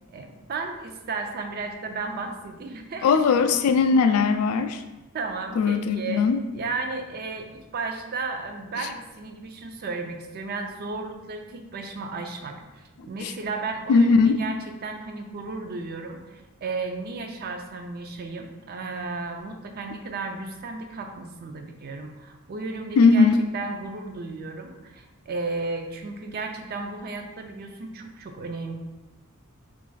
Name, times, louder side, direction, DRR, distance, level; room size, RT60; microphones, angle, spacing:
voice 1, 0.1-3.4 5.1-6.3 6.5-14.6 14.8-23.3 23.5-28.7, right 3 dB, 45° right, 4 dB, 0.4 m, -34 dB
voice 2, 3.0-4.8 5.6-6.4 13.2-13.3 13.9-14.4 23.0-23.4, left 4 dB, 80° left, 12 dB, 0.3 m, -19 dB
3.2 x 2.5 x 3.8 m, 1.1 s
head